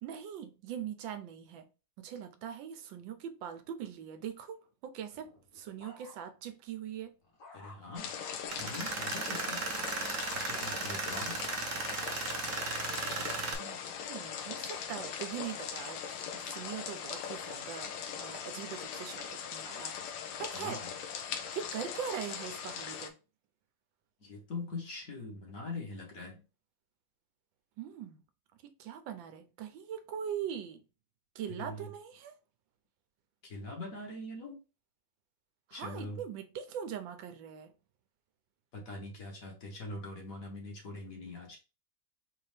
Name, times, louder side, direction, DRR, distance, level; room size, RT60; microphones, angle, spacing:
voice 1, 0.0-1.7 2.0-7.1 13.6-20.1 20.4-20.8 21.5-23.2 27.8-28.2 28.8-30.8 31.3-32.3 35.7-37.7, right 9 dB, 85° right, 1.4 m, -42 dB
sound 1, 5.1-6.5 6.9-8.6 10.0-10.4 11.1-13.0 13.6-14.0, left 2 dB, 70° left, 1.8 m, -55 dB
voice 2, 7.5-8.1 8.6-9.7 10.3-11.5 20.5-20.9 24.2-26.4 31.5-31.9 33.4-34.6 35.7-36.2 38.7-41.6, left 2 dB, 50° left, 1.6 m, -43 dB
sound 2, 8.0-23.1, left 7 dB, 85° left, 1.4 m, -40 dB
Tools, 8.5-13.5, right 4 dB, 55° right, 1.0 m, -36 dB
4.2 x 2.7 x 3.3 m
omnidirectional pair, 2.0 m